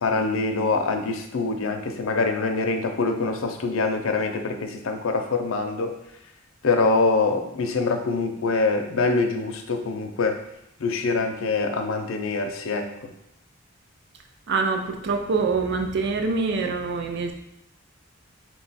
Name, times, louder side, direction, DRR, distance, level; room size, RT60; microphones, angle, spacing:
voice 1, 0.0-5.9 6.6-10.4 10.8-13.1, left 3 dB, 80° left, 5 dB, 0.5 m, -24 dB
voice 2, 14.5-17.3, right 4 dB, 55° right, 4 dB, 0.4 m, -25 dB
4.6 x 2.3 x 4.0 m, 0.79 s
head